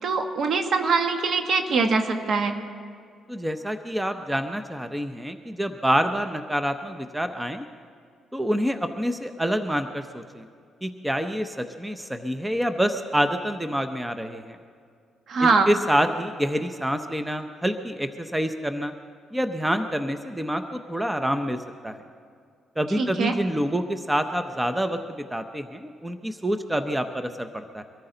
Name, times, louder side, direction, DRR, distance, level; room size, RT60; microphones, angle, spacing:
voice 1, 0.0-2.6 15.3-15.7 23.0-23.3, right 4 dB, 60° right, 6 dB, 1.5 m, -23 dB
voice 2, 3.3-7.6 8.3-10.5 10.8-14.6 15.4-18.9 19.3-21.6 21.8-22.0 22.8-25.0 25.3-27.8, equal, 10° right, 8 dB, 0.8 m, -27 dB
23.5 x 14.0 x 3.9 m, 2.2 s
cardioid pair, 90°, 0 cm